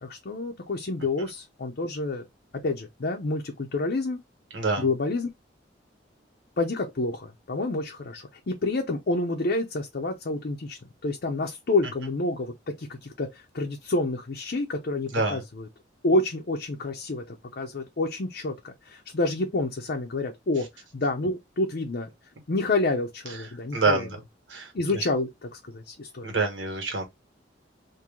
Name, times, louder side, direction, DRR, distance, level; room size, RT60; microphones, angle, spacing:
voice 1, 0.0-2.3 2.5-4.2 4.8-5.3 6.6-15.7 16.0-20.7 20.9-22.1 22.5-24.1 24.7-26.4, left 2 dB, 55° left, 0.6 m, -28 dB
voice 2, 4.5-4.9 15.1-15.4 23.7-24.2 24.5-24.7 26.2-27.0, right 3 dB, 75° right, 1.5 m, -26 dB
3.0 x 2.6 x 3.6 m
head